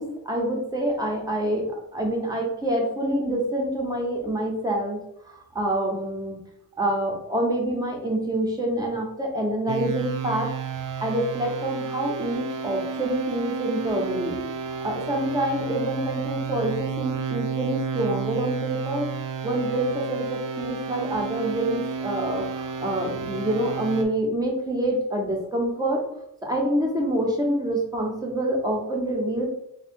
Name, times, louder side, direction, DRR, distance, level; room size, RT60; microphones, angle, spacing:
voice 1, 0.0-5.0 5.2-6.4 6.8-10.5 11.0-14.4 14.8-19.1 19.4-26.0 26.4-29.5, right 1 dB, 10° right, 0 dB, 0.6 m, -26 dB
sound 1, 9.7-24.0, right 6 dB, 65° right, 0.5 m, -31 dB
3.5 x 2.2 x 4.2 m, 0.78 s
cardioid pair, 180°, 34 cm